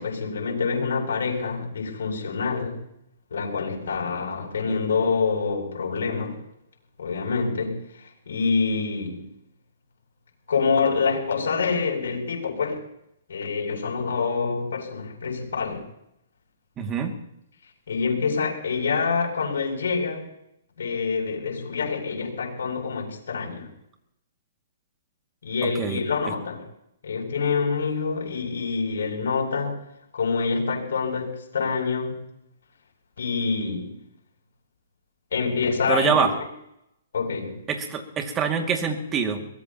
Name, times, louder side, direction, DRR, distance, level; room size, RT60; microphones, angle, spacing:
voice 1, 0.0-2.8 3.3-6.4 7.0-9.3 10.5-12.8 13.3-15.8 17.9-20.3 20.8-23.7 25.4-26.6 27.0-29.8 30.1-32.3 33.2-34.0 35.3-36.2 37.1-37.6, left 5 dB, 75° left, 0 dB, 7.5 m, -26 dB
voice 2, 16.8-17.2 25.6-26.0 35.9-36.3 37.7-39.5, right 6 dB, 20° right, 4 dB, 2.3 m, -25 dB
23.0 x 19.0 x 3.0 m, 0.79 s
hypercardioid pair, 140°, 0 cm